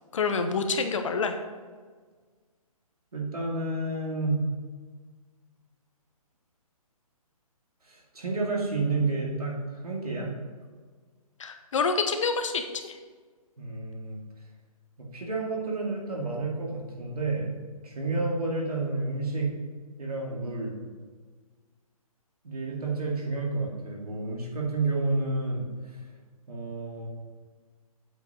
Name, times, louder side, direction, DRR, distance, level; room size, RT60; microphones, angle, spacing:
voice 1, 0.1-1.4 11.4-13.0, left 4 dB, 55° left, 7 dB, 0.9 m, -27 dB
voice 2, 3.1-4.4 7.9-10.3 13.6-14.2 15.0-17.6 17.8-19.5 20.0-20.8 22.4-26.0 26.5-27.1, right 3 dB, 85° right, -2 dB, 2.4 m, -30 dB
7.8 x 5.3 x 5.1 m, 1.5 s
hypercardioid pair, 155°, 19 cm